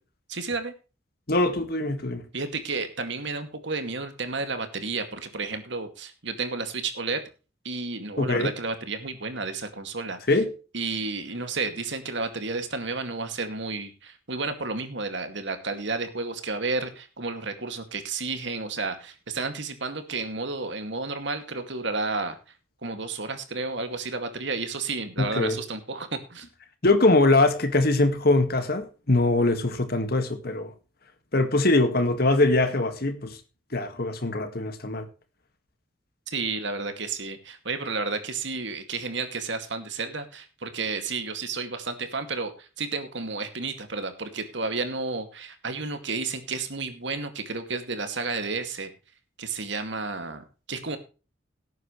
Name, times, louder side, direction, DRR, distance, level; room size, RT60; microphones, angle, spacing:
voice 1, 0.3-0.7 2.3-7.2 7.6-10.2 10.7-22.4 22.8-26.5 36.3-48.9 49.4-51.0, right 3 dB, 65° right, 2.3 m, -31 dB
voice 2, 1.3-2.2 8.2-8.5 10.3-10.5 25.2-25.6 26.8-30.7 31.3-33.4 33.7-35.1, left 2 dB, 50° left, 1.9 m, -22 dB
18.0 x 9.2 x 3.2 m
head